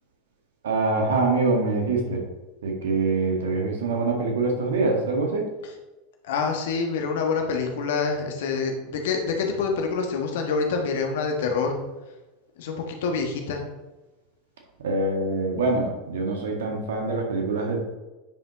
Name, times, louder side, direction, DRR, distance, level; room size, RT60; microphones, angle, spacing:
voice 1, 0.6-2.2 2.6-5.4 14.8-17.8, right 3 dB, 70° right, 1 dB, 1.7 m, -24 dB
voice 2, 6.2-11.8 12.6-13.6, left 4 dB, 65° left, 3 dB, 1.4 m, -26 dB
9.6 x 5.5 x 3.1 m, 1.1 s
figure-of-eight pair, 85°, 0 cm